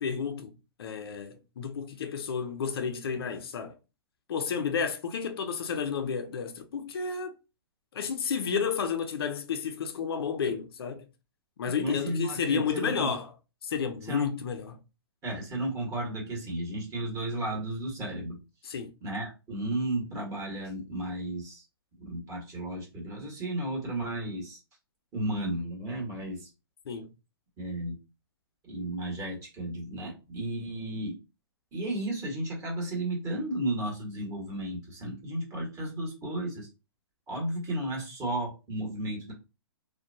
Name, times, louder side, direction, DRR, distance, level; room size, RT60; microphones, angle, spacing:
voice 1, 0.0-3.7 4.3-7.4 7.9-11.0 11.6-13.3 13.6-14.8 18.6-18.9 26.9-27.1, left 6 dB, 65° left, 0.5 m, -31 dB
voice 2, 11.8-13.2 14.1-14.3 15.2-18.4 19.0-21.6 22.0-24.6 25.1-26.5 27.6-28.0 28.6-31.1 31.7-36.7 37.3-39.3, right 1 dB, 25° right, 1.4 m, -33 dB
2.5 x 2.2 x 2.7 m
hypercardioid pair, 130°, 13 cm